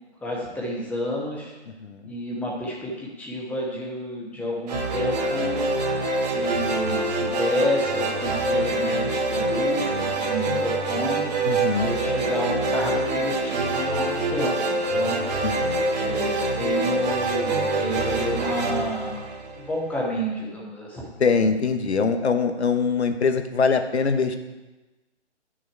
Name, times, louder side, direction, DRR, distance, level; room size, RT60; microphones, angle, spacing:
voice 1, 0.2-1.5 2.0-5.7 6.2-11.3 11.8-15.2 16.0-19.3 19.6-21.1, equal, 5° left, -4 dB, 1.2 m, -30 dB
voice 2, 1.8-2.1 11.4-11.9 15.4-15.9 21.2-24.4, left 5 dB, 70° left, 8 dB, 1.1 m, -23 dB
sound 1, 4.7-19.9, right 2 dB, 35° right, 1.1 m, -25 dB
11.5 x 6.2 x 4.6 m, 1.1 s
figure-of-eight pair, 145°, 35 cm